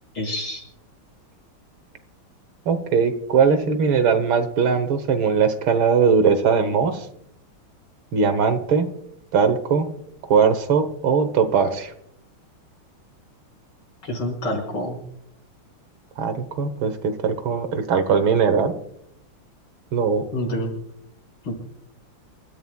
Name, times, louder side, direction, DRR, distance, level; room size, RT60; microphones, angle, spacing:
voice 1, 0.1-0.6 14.0-15.0 20.3-20.7 21.5-21.6, left 1 dB, 65° left, 0 dB, 5.8 m, -27 dB
voice 2, 2.7-7.1 8.1-8.9 9.3-9.9 10.3-11.9 16.2-18.8 19.9-20.2, right 6 dB, 70° right, 10 dB, 2.0 m, -20 dB
29.0 x 14.5 x 2.3 m, 0.72 s
omnidirectional pair, 2.3 m